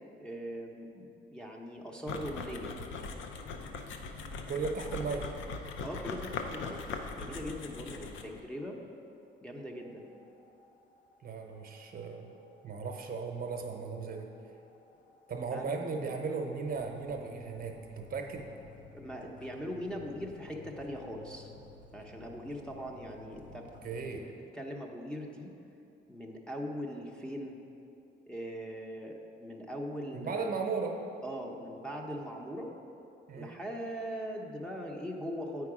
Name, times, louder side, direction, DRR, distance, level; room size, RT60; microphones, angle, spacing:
voice 1, 0.2-2.7 5.8-6.8 7.2-8.8 9.4-10.0 15.5-15.7 16.0-16.1 18.9-21.5 21.9-23.7 24.1-24.3 24.5-25.5 26.1-27.6 28.3-30.6 31.2-32.7 33.4-35.7, equal, 5° left, -2 dB, 0.7 m, -40 dB
sound 1, 2.1-8.4, left 4 dB, 75° left, 0.6 m, -40 dB
voice 2, 4.5-5.3 11.2-12.3 12.6-14.3 15.3-18.4 23.5-23.6 23.8-24.3 30.1-31.0 33.3-33.5, right 4 dB, 45° right, 3 dB, 0.8 m, -36 dB
sound 2, 9.6-24.0, left 5 dB, 40° left, 0.8 m, -56 dB
8.1 x 4.8 x 4.8 m, 2.8 s
cardioid pair, 90°, 20 cm